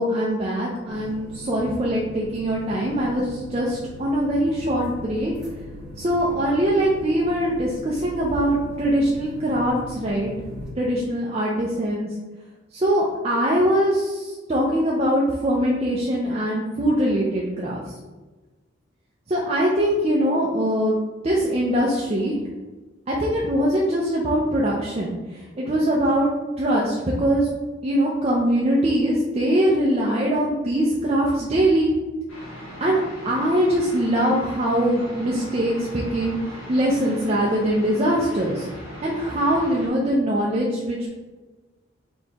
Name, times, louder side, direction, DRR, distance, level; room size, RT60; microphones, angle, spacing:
voice 1, 0.0-5.3 6.0-10.3 10.8-12.1 12.7-17.8 19.3-21.0 21.2-22.4 23.1-26.3 26.6-27.5 27.8-31.9 32.8-33.0 33.3-36.4 36.7-38.7 39.0-41.1, right 1 dB, 30° right, -4 dB, 0.5 m, -22 dB
sound 1, 0.9-10.7, left 1 dB, 5° right, 1.3 m, -39 dB
sound 2, 32.3-39.9, equal, 90° left, 1.2 m, -39 dB
4.3 x 2.9 x 3.5 m, 1.2 s
head